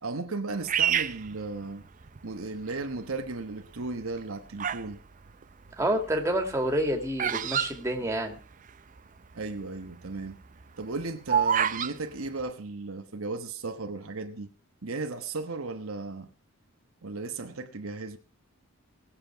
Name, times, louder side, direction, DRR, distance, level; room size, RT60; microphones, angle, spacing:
voice 1, 0.0-1.8 2.2-5.0 9.3-10.4 10.8-14.5 14.8-16.3 17.0-18.2, right 3 dB, 75° right, 1.2 m, -35 dB
Bird vocalization bird call bird song, 0.7-2.2 2.8-3.3 4.0-4.9 5.2-8.7 9.0-9.1 9.2-9.6 10.0-11.9, right 8 dB, 40° right, 0.5 m, -28 dB
voice 2, 5.8-8.4, right 1 dB, 15° right, 2.1 m, -28 dB
19.5 x 7.5 x 4.6 m
head